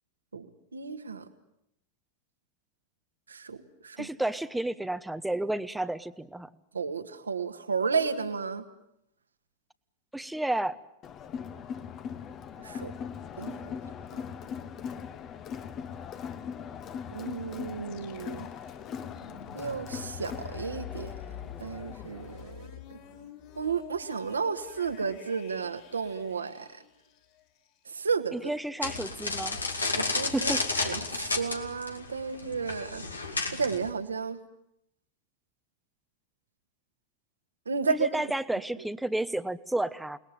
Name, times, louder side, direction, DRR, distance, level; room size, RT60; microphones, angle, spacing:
voice 1, 0.7-1.3 3.3-3.6 3.8-4.1 6.7-8.6 12.6-12.9 13.4-13.8 17.1-18.5 19.5-21.1 21.6-23.0 23.6-26.7 27.9-28.5 30.0-30.5 30.8-33.0 33.5-34.4 37.7-38.1, right 5 dB, 75° right, 9 dB, 1.9 m, -32 dB
voice 2, 4.0-6.5 10.1-10.8 28.3-29.6 30.3-30.9 37.9-40.2, right 1 dB, 5° right, 13 dB, 1.1 m, -31 dB
Crowd, 11.0-22.6, left 7 dB, 30° left, 1.4 m, -40 dB
sound 1, 17.8-27.7, left 10 dB, 50° left, 4.3 m, -47 dB
sound 2, 28.8-33.9, left 3 dB, 80° left, 2.4 m, -32 dB
29.0 x 20.5 x 9.3 m, 0.80 s
figure-of-eight pair, 90°, 0 cm